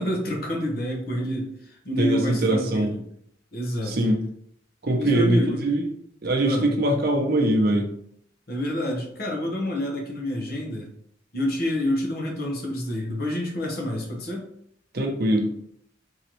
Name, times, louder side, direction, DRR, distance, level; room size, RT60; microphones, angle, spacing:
voice 1, 0.0-3.0 3.5-4.2 5.0-5.6 6.4-6.7 8.5-10.9 11.3-14.4, left 1 dB, 55° left, 0 dB, 1.0 m, -28 dB
voice 2, 2.0-2.9 3.9-4.2 4.8-5.9 6.2-7.9 14.9-15.5, right 1 dB, 55° right, 2 dB, 0.7 m, -22 dB
3.9 x 3.0 x 3.0 m, 0.69 s
head